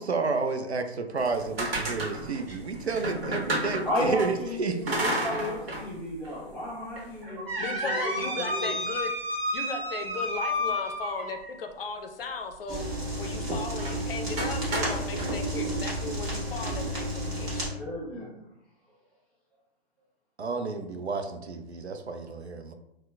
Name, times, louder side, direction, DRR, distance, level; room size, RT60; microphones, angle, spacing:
voice 1, 0.0-5.0 20.4-22.7, right 4 dB, 90° right, 7 dB, 0.5 m, -31 dB
sound 1, 1.2-4.3 4.9-5.9 6.2-6.3 7.0-11.6 13.8-14.0 14.4-15.3, equal, 65° right, 1.2 m, -31 dB
voice 2, 3.8-8.7 17.7-18.3, left 1 dB, 5° left, -7 dB, 1.1 m, -33 dB
voice 3, 7.6-9.1 9.5-12.9 13.1-17.7, left 4 dB, 60° left, 5 dB, 0.5 m, -36 dB
sound 2, 12.7-17.7, right 1 dB, 30° right, 1.3 m, -31 dB
4.2 x 2.1 x 2.2 m, 0.81 s
figure-of-eight pair, 120°, 32 cm